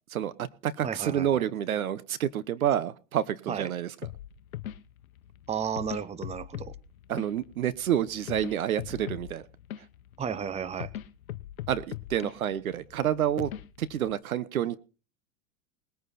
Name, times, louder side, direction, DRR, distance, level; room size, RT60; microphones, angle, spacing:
voice 1, 0.1-3.9 7.1-9.4 11.7-13.5 13.8-14.8, right 10 dB, 85° right, 16 dB, 1.1 m, -29 dB
voice 2, 0.8-1.4 3.5-3.7 5.5-6.7 10.2-10.9, right 7 dB, 15° right, 17 dB, 0.9 m, -33 dB
sound 1, 4.0-14.1, left 12 dB, 80° left, 1.0 m, -41 dB
20.0 x 9.5 x 4.2 m, 0.35 s
hypercardioid pair, 110°, 41 cm